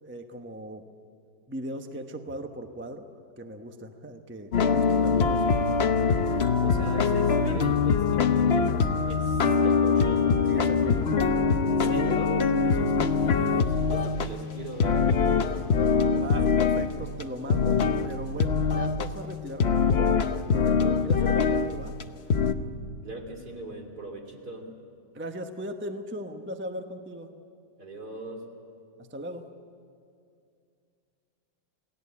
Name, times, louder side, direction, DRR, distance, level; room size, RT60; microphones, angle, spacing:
voice 1, 0.0-0.8 1.5-3.1 3.4-5.6 10.5-11.3 12.6-13.1 16.2-20.2 20.5-21.9 25.1-27.3 29.0-29.5, right 1 dB, 10° right, 5 dB, 0.8 m, -38 dB
sound 1, 4.5-14.3 14.8-16.9 17.2-17.3 17.5-18.1 18.4-19.0 19.6-21.7 22.0-22.1 22.3-22.5, left 5 dB, 45° left, 0.9 m, -23 dB
voice 2, 6.6-8.7 9.1-10.3 11.6-12.5 13.5-15.9 23.0-24.7 27.8-28.4, right 2 dB, 65° right, 1 dB, 3.6 m, -39 dB
28.5 x 18.5 x 8.5 m, 2.4 s
omnidirectional pair, 1.9 m